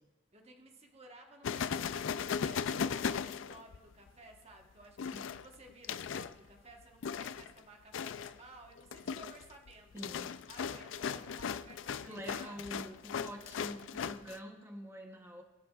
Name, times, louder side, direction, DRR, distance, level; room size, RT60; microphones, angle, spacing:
voice 1, 0.3-12.6 13.2-13.3, right 2 dB, 35° right, 2 dB, 1.2 m, -56 dB
sound 1, 1.4-4.1 5.0-6.4 7.0-7.6 7.9-8.4 8.8-14.4, left 7 dB, 90° left, 0.4 m, -37 dB
voice 2, 9.9-10.4 12.0-15.4, equal, 15° right, 2 dB, 0.9 m, -46 dB
22.5 x 8.5 x 2.4 m, 1.2 s
head